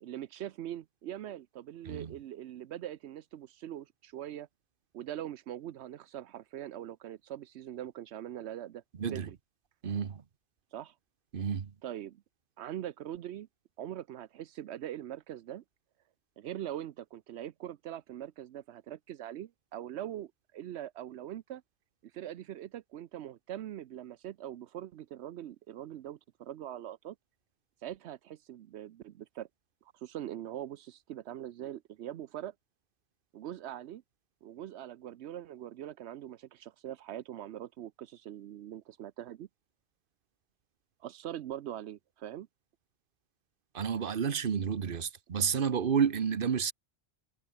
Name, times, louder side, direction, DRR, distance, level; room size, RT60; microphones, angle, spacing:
voice 1, 0.0-4.5 4.9-8.8 9.1-9.4 10.7-10.9 11.8-12.2 12.6-13.5 13.8-15.6 16.4-21.6 22.0-27.2 27.8-29.5 29.9-32.5 33.3-34.0 34.4-39.5 41.0-42.5, right 11 dB, 85° right, 0.9 m, -42 dB
voice 2, 9.0-9.3 9.8-10.2 11.3-11.7 43.7-46.7, right 7 dB, 55° right, 1.2 m, -30 dB
omnidirectional pair, 1.1 m